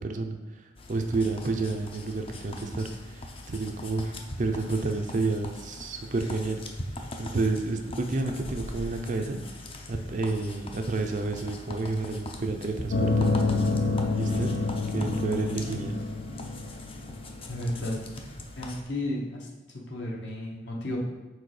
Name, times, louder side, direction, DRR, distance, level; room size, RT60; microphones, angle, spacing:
voice 1, 0.0-4.1 4.4-6.6 7.2-9.4 9.9-13.3 14.2-14.5 14.9-16.0, right 3 dB, 40° right, 5 dB, 0.5 m, -30 dB
sound 1, 0.8-18.8, left 1 dB, 30° left, 0.5 m, -41 dB
sound 2, 12.9-17.8, left 3 dB, 85° left, 1.0 m, -28 dB
voice 2, 17.5-17.9 18.6-19.5 19.9-21.0, left 1 dB, 65° left, -2 dB, 1.3 m, -33 dB
4.8 x 4.0 x 4.8 m, 1.2 s
head